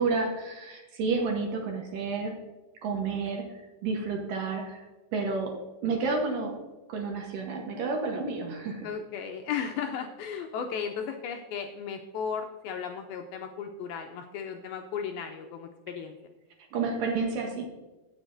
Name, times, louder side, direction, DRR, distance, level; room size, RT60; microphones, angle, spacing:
voice 1, 0.0-2.3 2.8-4.9 5.1-5.5 5.8-6.6 6.9-8.9 16.7-17.6, right 4 dB, 65° right, 1 dB, 2.3 m, -30 dB
voice 2, 8.8-16.2, left 7 dB, 80° left, 4 dB, 2.2 m, -35 dB
17.0 x 7.1 x 2.6 m, 1.1 s
omnidirectional pair, 4.8 m